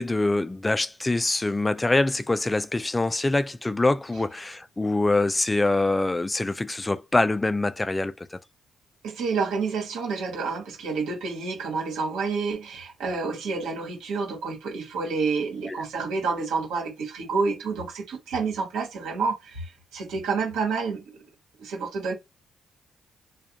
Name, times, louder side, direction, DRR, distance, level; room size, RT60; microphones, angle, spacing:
voice 1, 0.0-8.4 15.7-15.9, left 2 dB, 20° left, 0.3 m, -24 dB
voice 2, 9.0-21.0 21.6-22.1, right 4 dB, 90° right, 1.1 m, -29 dB
2.3 x 2.1 x 2.8 m
supercardioid pair, 65°, 0 cm